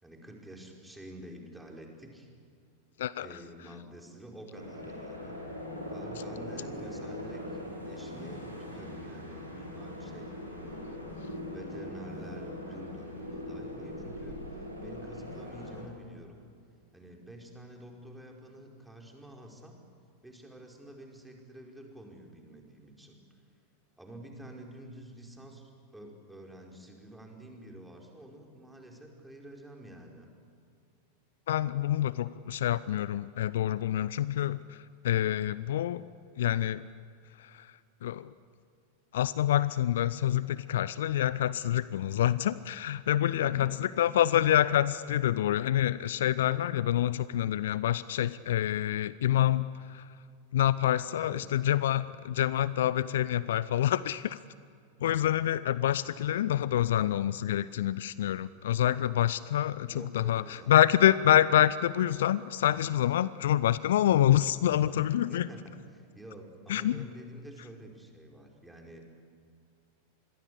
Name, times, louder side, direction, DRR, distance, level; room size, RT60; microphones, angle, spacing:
voice 1, 0.0-2.3 3.2-5.4 5.9-7.6 7.8-11.1 11.5-14.4 14.8-16.4 16.9-19.8 20.2-23.2 24.0-30.3 43.4-44.0 51.2-51.7 59.9-61.0 65.3-69.1, right 1 dB, 5° right, 1 dB, 4.7 m, -48 dB
sound 1, 4.5-15.8, left 1 dB, 90° right, 6.3 m, -41 dB
voice 2, 31.5-34.6 35.0-36.0 36.4-36.8 38.0-38.3 39.1-43.7 44.0-50.0 50.5-54.4 55.0-65.4 66.7-67.0, left 12 dB, 60° left, 18 dB, 0.5 m, -27 dB
27.0 x 21.5 x 8.5 m, 2.3 s
figure-of-eight pair, 90°, 0 cm